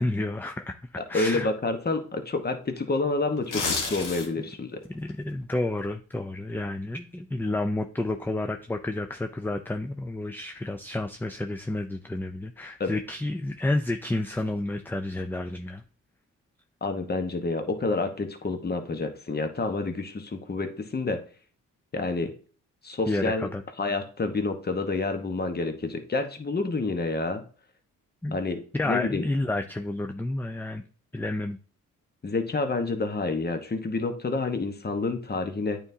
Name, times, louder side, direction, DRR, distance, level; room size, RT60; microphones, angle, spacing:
voice 1, 0.0-0.8 1.1-1.5 4.9-15.8 23.1-23.6 28.2-28.4 28.7-30.8 31.1-31.6, left 2 dB, 5° left, 6 dB, 0.5 m, -30 dB
voice 2, 1.0-4.8 12.8-12.9 16.8-21.2 21.9-22.3 22.8-23.5 23.8-27.4 28.3-28.6 28.8-29.2 32.2-35.8, left 3 dB, 30° left, 7 dB, 1.1 m, -28 dB
sound 1, 3.4-4.5 4.9-5.1, left 4 dB, 65° left, 1.4 m, -29 dB
8.7 x 4.1 x 2.8 m, 0.41 s
supercardioid pair, 55°, 34 cm